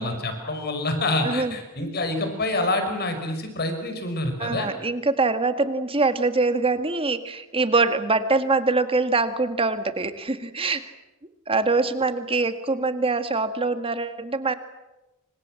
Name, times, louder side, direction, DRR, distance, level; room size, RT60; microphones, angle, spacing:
voice 1, 0.0-4.7, left 2 dB, 45° left, 6 dB, 5.6 m, -27 dB
voice 2, 4.4-10.9 11.5-14.5, right 3 dB, 25° right, 9 dB, 1.8 m, -24 dB
27.5 x 26.0 x 7.7 m, 1.0 s
head